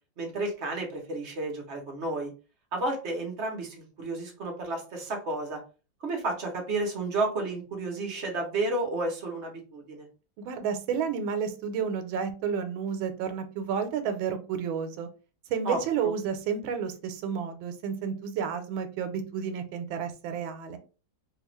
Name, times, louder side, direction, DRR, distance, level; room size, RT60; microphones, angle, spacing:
voice 1, 0.2-2.3 2.7-5.6 6.0-10.1 15.6-16.1, right 2 dB, 50° right, 1 dB, 0.8 m, -32 dB
voice 2, 10.4-15.1 15.5-20.8, right 7 dB, 90° right, 8 dB, 1.4 m, -31 dB
3.3 x 2.4 x 3.0 m, 0.34 s
omnidirectional pair, 2.1 m